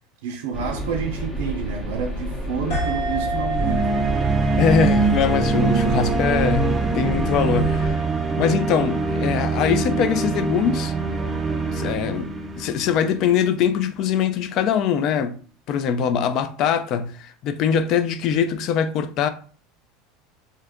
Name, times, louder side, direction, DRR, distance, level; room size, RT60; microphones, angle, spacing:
voice 1, 0.2-4.1, right 6 dB, 80° right, 0.4 m, -29 dB
sound 1, 0.5-7.9, equal, 10° left, 0.8 m, -30 dB
sound 2, 2.7-11.8, right 3 dB, 65° left, 1.2 m, -32 dB
sound 3, 3.5-13.6, right 3 dB, 15° right, 0.4 m, -24 dB
voice 2, 4.6-8.0 8.4-10.9 11.7-15.3 15.7-19.3, left 7 dB, 50° left, 0.4 m, -22 dB
2.8 x 2.3 x 3.4 m
supercardioid pair, 130°, 0 cm